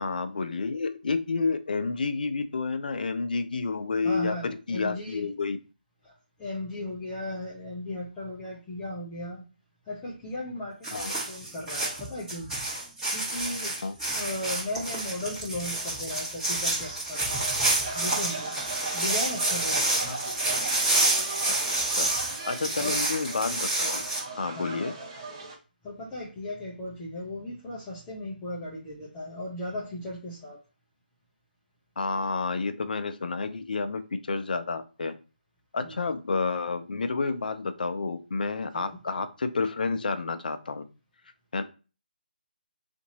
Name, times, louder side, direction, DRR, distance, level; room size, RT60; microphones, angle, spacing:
voice 1, 0.0-5.6 10.9-11.1 13.8-14.0 19.9-20.4 21.2-21.5 22.0-22.1 22.5-24.0 24.4-24.9 32.0-35.1 35.7-40.8 41.5-41.6, left 4 dB, 60° left, 10 dB, 0.5 m, -30 dB
voice 2, 4.0-5.3 6.0-6.1 6.4-9.4 9.9-12.5 13.1-13.7 14.1-17.4 17.9-18.5 18.9-20.0 22.8-23.0 24.5-24.8 25.8-30.6 35.8-36.0 38.7-39.0, left 1 dB, 15° left, -6 dB, 0.7 m, -36 dB
sound 1, 10.8-24.2, right 2 dB, 10° right, 1.3 m, -29 dB
sound 2, 17.3-25.6, right 3 dB, 25° right, 0.8 m, -38 dB
2.8 x 2.6 x 4.0 m, 0.33 s
figure-of-eight pair, 160°, 5 cm